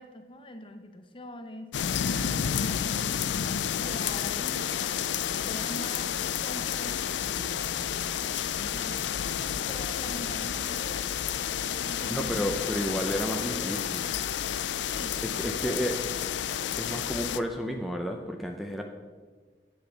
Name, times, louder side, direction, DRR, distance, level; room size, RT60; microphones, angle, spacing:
voice 1, 0.0-5.0 5.4-8.1 8.6-9.1 9.7-11.0 11.8-12.9 13.4-14.3 14.8-15.2 15.6-15.8, left 1 dB, 30° left, 7 dB, 0.8 m, -44 dB
sound 1, 1.7-17.4, left 9 dB, 85° left, 0.4 m, -30 dB
voice 2, 12.1-14.0 15.2-15.9 16.8-18.8, equal, ahead, 3 dB, 0.6 m, -31 dB
9.3 x 8.4 x 5.6 m, 1.5 s
head